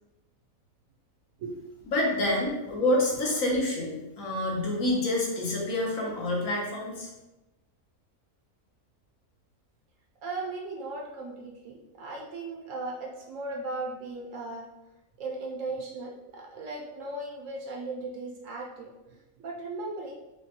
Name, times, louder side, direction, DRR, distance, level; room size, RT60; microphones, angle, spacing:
voice 1, 1.4-1.8 10.2-14.7 15.2-20.2, right 2 dB, 65° right, -1 dB, 0.9 m, -37 dB
voice 2, 1.9-7.1, left 1 dB, 65° left, -2 dB, 1.3 m, -27 dB
5.1 x 2.2 x 2.8 m, 0.99 s
omnidirectional pair, 1.6 m